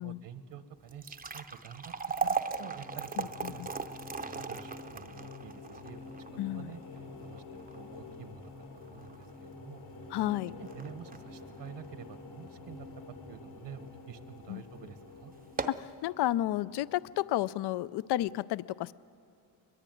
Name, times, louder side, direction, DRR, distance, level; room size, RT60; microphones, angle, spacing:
voice 1, 0.0-3.6 4.1-9.8 10.2-12.9 13.3-15.3, right 7 dB, 60° right, 11 dB, 1.2 m, -49 dB
sound 1, 0.8-13.1 13.5-13.6 14.3-14.5 14.8-14.9 15.4-15.9, right 5 dB, 20° right, 0.7 m, -39 dB
sound 2, 2.4-17.7, left 3 dB, 85° left, 3.9 m, -49 dB
voice 2, 3.2-3.7 6.4-6.7 10.1-10.5 14.5-14.6 15.7-18.9, left 14 dB, 60° left, 18 dB, 0.5 m, -32 dB
21.5 x 21.5 x 9.2 m, 2.5 s
cardioid pair, 120°, 47 cm